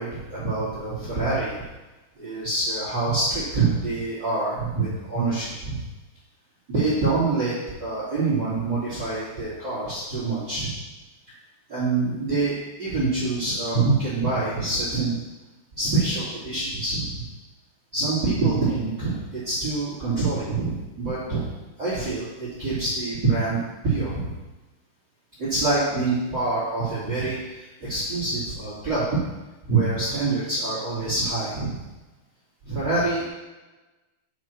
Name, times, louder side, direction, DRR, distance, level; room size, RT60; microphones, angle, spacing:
voice 1, 0.0-1.6 2.2-5.8 6.7-10.7 11.7-15.2 15.7-17.2 17.9-21.4 21.8-24.3 25.4-29.0 29.6-31.8 32.6-33.3, right 3 dB, 30° right, -9 dB, 2.4 m, -25 dB
7.8 x 4.1 x 4.5 m, 1.1 s
omnidirectional pair, 4.9 m